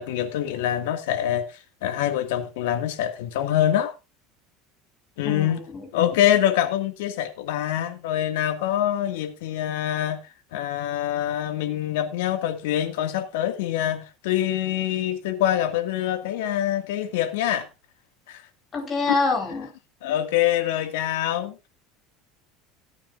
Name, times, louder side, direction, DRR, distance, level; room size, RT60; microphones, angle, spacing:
voice 1, 0.0-3.9 5.2-5.6 5.9-10.2 10.5-17.7 18.3-18.4 20.0-21.6, left 11 dB, 90° left, 2.1 m, -25 dB
voice 2, 5.2-5.9 18.7-19.7, left 3 dB, 25° left, 4.5 m, -26 dB
17.0 x 9.2 x 2.6 m
cardioid pair, 145°, 0 cm